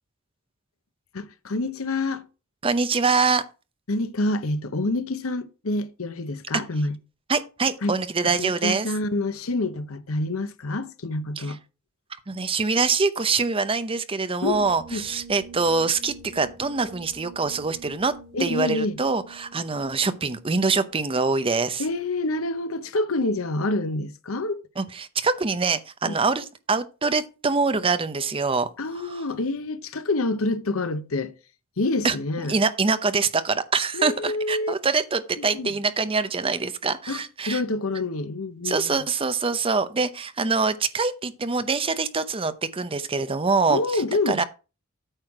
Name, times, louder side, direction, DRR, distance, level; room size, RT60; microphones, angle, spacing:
voice 1, 1.1-2.2 3.9-7.0 7.8-7.9 8.3-11.6 14.4-15.0 18.3-19.0 21.8-24.7 26.0-26.2 28.8-31.3 31.8-32.5 33.9-34.7 35.4-35.7 37.1-39.0 43.7-44.4, left 2 dB, 75° left, 0.9 m, -27 dB
voice 2, 2.6-3.4 7.3-8.9 11.4-11.6 12.3-18.1 18.4-21.8 24.8-28.7 29.0-29.2 32.0-37.6 38.6-44.4, right 4 dB, 25° right, 0.7 m, -24 dB
sound 1, 14.4-21.9, right 4 dB, ahead, 4.4 m, -47 dB
9.0 x 6.3 x 4.8 m
head